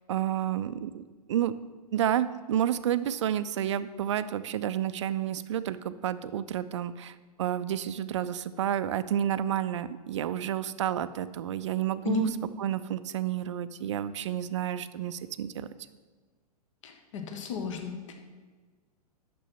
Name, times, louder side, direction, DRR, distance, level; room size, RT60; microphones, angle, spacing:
voice 1, 0.1-1.5 1.9-12.3 12.6-15.7, right 10 dB, 50° right, 14 dB, 0.4 m, -30 dB
voice 2, 16.8-18.1, left 7 dB, 50° left, 5 dB, 1.1 m, -34 dB
6.2 x 6.1 x 6.2 m, 1.4 s
figure-of-eight pair, 105°, 20 cm